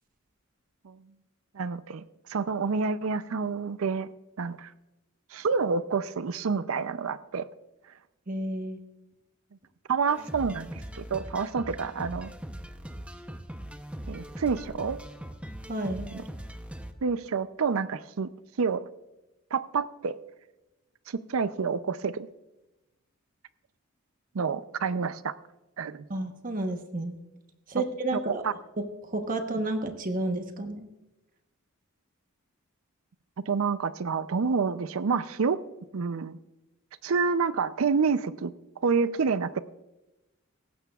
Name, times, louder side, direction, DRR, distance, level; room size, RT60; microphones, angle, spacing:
voice 1, 1.5-4.1 4.4-4.7 5.3-7.5 9.9-12.3 14.1-15.0 17.0-18.3 18.6-18.8 19.5-20.2 21.1-22.3 24.3-25.3 25.8-26.0 28.1-28.5 33.5-35.6 35.9-36.4 37.0-39.6, right 5 dB, 70° right, 14 dB, 0.5 m, -28 dB
voice 2, 8.3-8.8 15.7-16.1 26.1-27.2 27.7-28.4 29.0-30.9, right 2 dB, 40° right, 6 dB, 1.0 m, -31 dB
sound 1, 10.1-16.9, equal, 5° right, 0.7 m, -41 dB
18.0 x 15.0 x 2.4 m, 0.98 s
head